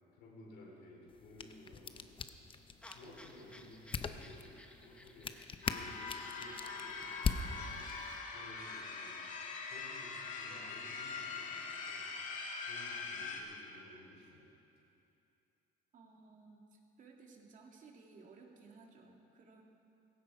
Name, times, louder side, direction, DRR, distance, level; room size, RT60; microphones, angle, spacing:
voice 1, 0.1-2.1 2.8-8.0 8.3-12.1 12.6-14.5, left 1 dB, 85° left, -2 dB, 4.3 m, -56 dB
sound 1, 1.1-8.2, left 5 dB, 30° left, 0.7 m, -42 dB
sound 2, 2.8-8.8, left 1 dB, 5° left, 1.1 m, -58 dB
sound 3, 5.6-13.4, left 4 dB, 50° left, 2.0 m, -43 dB
voice 2, 15.9-19.6, right 4 dB, 50° right, 0 dB, 2.3 m, -58 dB
16.5 x 15.5 x 4.9 m, 2.8 s
cardioid pair, 110°, 17 cm